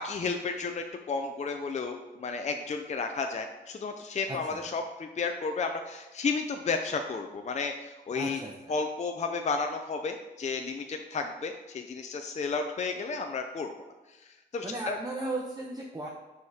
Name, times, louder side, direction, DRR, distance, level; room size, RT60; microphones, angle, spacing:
voice 1, 0.0-8.4 8.7-13.7 14.1-15.0, left 4 dB, 40° left, 4 dB, 0.5 m, -32 dB
voice 2, 4.3-4.6 8.1-8.5 14.6-16.1, right 2 dB, 20° right, -1 dB, 0.8 m, -36 dB
6.9 x 5.0 x 4.8 m, 1.1 s
wide cardioid pair, 125°, 19 cm